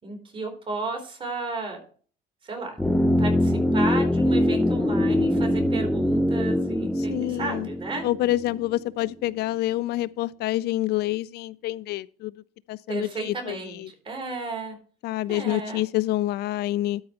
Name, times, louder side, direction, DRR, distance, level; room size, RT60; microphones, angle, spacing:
voice 1, 0.0-1.8 2.4-2.8 3.2-8.1 12.9-14.8 15.3-15.8, right 3 dB, 30° right, 3.9 m, -33 dB
sound 1, 2.8-8.8 9.1-9.2, left 1 dB, 5° left, 0.6 m, -23 dB
voice 2, 7.0-7.7 8.0-12.4 12.7-13.9 15.0-17.0, left 15 dB, 75° left, 0.4 m, -27 dB
12.5 x 5.4 x 4.3 m
cardioid pair, 110°, 17 cm